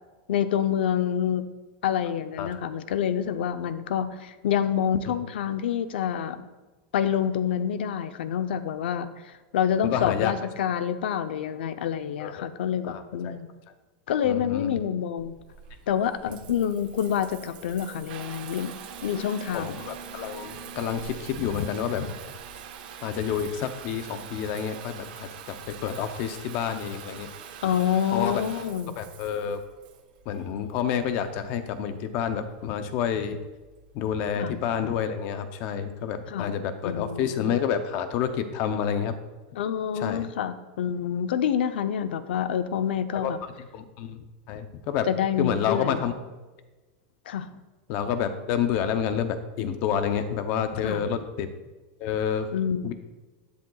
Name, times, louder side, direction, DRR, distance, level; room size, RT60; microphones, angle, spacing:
voice 1, 0.3-1.5 1.8-6.5 6.9-13.5 14.1-15.3 15.9-18.7 19.0-19.8 27.6-28.9 34.4-34.5 36.3-36.5 36.8-37.6 39.6-43.4 45.1-46.1 47.3-47.5 50.8-51.0 52.5-52.9, left 9 dB, 90° left, 11 dB, 0.7 m, -27 dB
voice 2, 9.8-10.3 12.2-12.5 12.9-13.4 14.2-14.7 16.3-16.4 19.2-19.3 19.5-22.1 23.0-27.3 28.1-28.4 29.0-29.6 30.3-33.4 33.9-39.1 39.9-40.3 43.1-43.3 43.7-45.1 45.4-46.1 47.9-51.5 52.0-52.5 52.8-52.9, left 8 dB, 35° left, 9 dB, 0.6 m, -29 dB
Water tap faucet / Bathtub (filling or washing) / Trickle dribble, 15.2-34.1, right 8 dB, 60° right, 1.2 m, -44 dB
11.5 x 10.5 x 2.4 m, 1.2 s
supercardioid pair, 180°, 5 cm